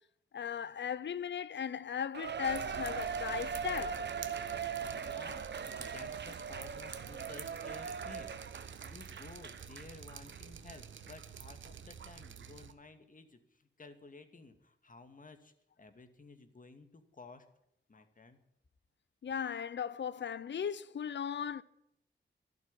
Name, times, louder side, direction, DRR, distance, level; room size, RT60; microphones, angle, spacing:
voice 1, 0.3-4.0 19.2-21.6, left 8 dB, 70° left, 0.6 m, -37 dB
Cheering, 2.1-9.9 10.3-10.4 11.1-11.2, right 6 dB, 65° right, 1.0 m, -40 dB
Drip, 2.5-12.7, right 7 dB, 80° right, 1.2 m, -49 dB
voice 2, 4.9-17.5 17.9-18.4, left 3 dB, 45° left, 2.2 m, -54 dB
12.5 x 12.0 x 9.9 m
cardioid pair, 65°, 19 cm